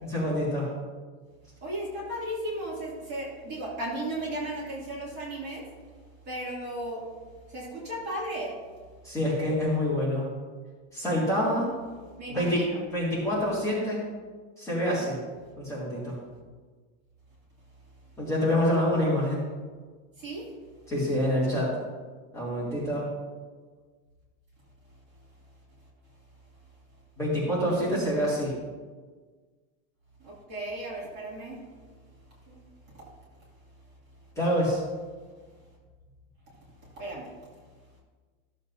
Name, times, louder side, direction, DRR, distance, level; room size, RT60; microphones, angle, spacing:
voice 1, 0.1-0.7 9.0-10.3 10.9-11.7 12.3-12.7 12.9-14.0 14.6-15.2 15.6-16.2 18.2-19.5 20.9-21.7 22.3-23.1 27.2-28.5 34.4-34.8, equal, 10° left, -9 dB, 2.3 m, -26 dB
voice 2, 1.6-5.7 6.3-7.0 7.5-8.5 12.2-12.8 20.2-20.4 30.2-31.6 32.5-32.6 37.0-37.3, right 1 dB, 25° right, -5 dB, 2.5 m, -35 dB
14.5 x 7.3 x 2.7 m, 1.5 s
supercardioid pair, 175°, 39 cm